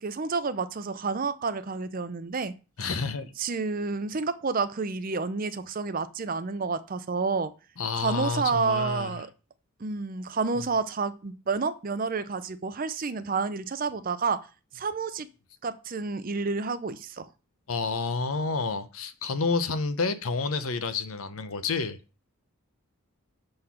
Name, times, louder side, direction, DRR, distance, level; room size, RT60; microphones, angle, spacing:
voice 1, 0.0-2.5 3.4-7.5 7.9-9.3 9.8-14.5 14.7-15.3 15.6-17.3, right 4 dB, 40° right, 0.5 m, -29 dB
voice 2, 2.8-3.3 7.8-9.2 17.7-22.0, left 4 dB, 70° left, 0.8 m, -29 dB
6.5 x 4.0 x 5.7 m
head